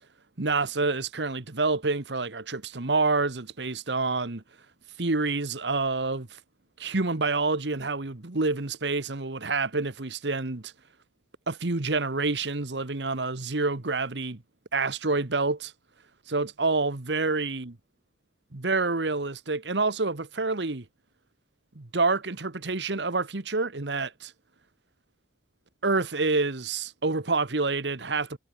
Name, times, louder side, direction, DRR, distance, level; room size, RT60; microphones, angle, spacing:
voice 1, 0.4-4.4 5.0-6.3 6.8-10.7 11.5-14.4 14.7-15.7 16.3-17.8 18.5-20.8 21.7-24.3 25.8-28.4, right 3 dB, 80° right, 1.4 m, -27 dB
head